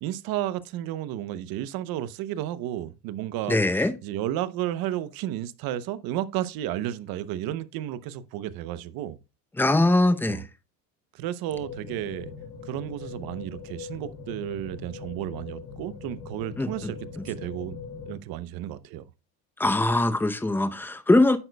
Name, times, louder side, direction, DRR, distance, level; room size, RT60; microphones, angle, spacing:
voice 1, 0.0-9.2 10.3-10.4 11.1-12.3 12.6-17.0 17.2-17.8 18.1-19.0, right 12 dB, 70° right, 0.8 m, -32 dB
voice 2, 3.5-3.9 9.6-10.4 16.6-16.9 19.6-21.4, left 2 dB, 5° left, 0.6 m, -22 dB
sound 1, 11.5-18.2, left 5 dB, 70° left, 1.5 m, -41 dB
9.9 x 7.9 x 2.2 m
cardioid pair, 125°, 37 cm